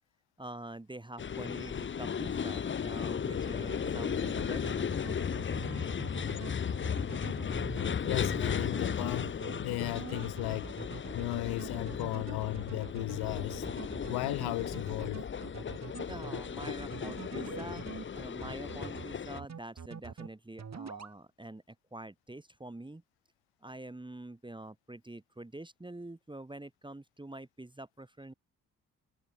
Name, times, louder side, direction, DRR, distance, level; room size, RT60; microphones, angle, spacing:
voice 1, 0.4-4.9 16.1-17.9 18.1-23.0 23.6-28.3, right 1 dB, 10° right, 2.1 m, -46 dB
sound 1, 1.2-19.4, left 7 dB, 25° left, 0.9 m, -35 dB
sound 2, 3.7-18.0 18.4-19.0 19.4-20.3 20.6-21.1, right 6 dB, 40° right, 2.8 m, -44 dB
voice 2, 8.1-13.7 14.1-15.2, left 21 dB, 60° left, 0.7 m, -36 dB
figure-of-eight pair, 40°, 43 cm